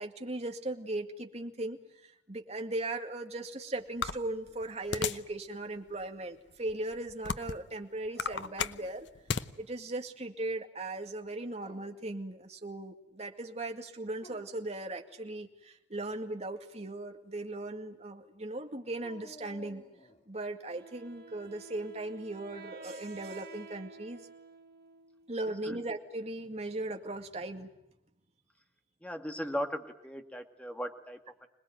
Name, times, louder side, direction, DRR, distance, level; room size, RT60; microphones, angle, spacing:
voice 1, 0.0-9.1 9.6-19.8 20.3-24.3 25.3-27.7, right 2 dB, 35° right, 5 dB, 2.2 m, -38 dB
sound 1, 4.0-5.3 5.9-6.0 6.7-7.7 8.1-9.5, left 5 dB, 70° left, 0.9 m, -34 dB
Dog, 8.1-9.3 9.6-10.3 11.4-12.1 14.1-14.7 19.0-20.3, left 1 dB, 30° left, 3.0 m, -55 dB
Wind instrument woodwind instrument, 20.7-25.5, right 4 dB, 55° right, 1.7 m, -51 dB
voice 2, 29.0-31.5, equal, 5° left, 5 dB, 2.0 m, -38 dB
26.0 x 20.0 x 9.3 m, 0.87 s
head